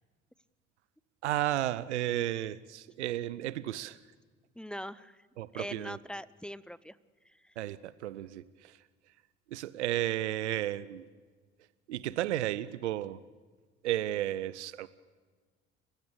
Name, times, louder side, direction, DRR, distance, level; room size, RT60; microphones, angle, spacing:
voice 1, 1.2-4.0 5.4-6.0 7.6-8.8 9.5-11.1 11.9-13.2 13.8-14.9, right 13 dB, 80° right, 17 dB, 0.7 m, -33 dB
voice 2, 4.6-5.2 5.5-7.0 7.2-7.5, equal, 5° left, 18 dB, 0.9 m, -42 dB
29.5 x 15.5 x 8.7 m, 1.4 s
hypercardioid pair, 60°, 34 cm